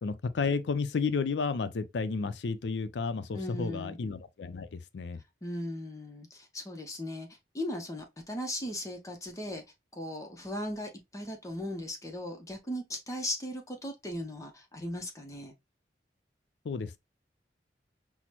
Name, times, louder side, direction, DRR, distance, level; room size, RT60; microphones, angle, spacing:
voice 1, 0.0-5.2 16.6-17.0, left 4 dB, 80° left, 0.4 m, -32 dB
voice 2, 3.3-4.0 5.4-7.3 7.5-9.6 10.0-15.5, left 1 dB, 20° left, 0.6 m, -37 dB
6.0 x 2.0 x 2.9 m
head